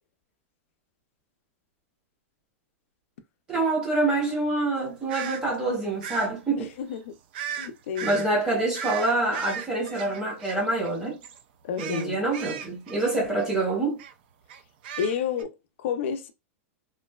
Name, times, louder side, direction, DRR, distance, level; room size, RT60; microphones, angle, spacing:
voice 1, 3.5-6.7 8.0-11.2 11.8-14.0, right 2 dB, 10° right, 0.9 m, -26 dB
sound 1, 5.1-5.4 6.0-6.3 7.3-7.7 7.9-8.3 8.7-11.0 11.2-11.4 11.8-13.6 14.0-14.1 14.5-15.4, right 9 dB, 45° right, 0.3 m, -36 dB
voice 2, 6.6-7.2 7.5-8.3 11.6-12.2 15.0-16.3, left 7 dB, 60° left, 0.4 m, -31 dB
3.1 x 2.5 x 2.2 m
supercardioid pair, 175°, 8 cm